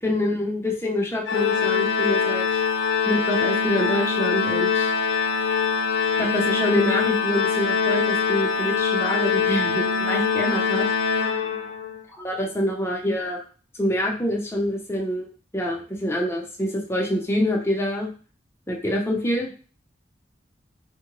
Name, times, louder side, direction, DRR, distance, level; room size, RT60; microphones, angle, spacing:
voice 1, 0.0-2.6 3.0-4.9 6.2-10.9 12.2-13.4 13.7-15.3 15.5-18.1 18.7-19.5, left 1 dB, 15° left, 0 dB, 0.6 m, -26 dB
Organ, 1.3-12.0, left 6 dB, 85° left, 0.4 m, -23 dB
3.6 x 2.1 x 2.9 m, 0.39 s
head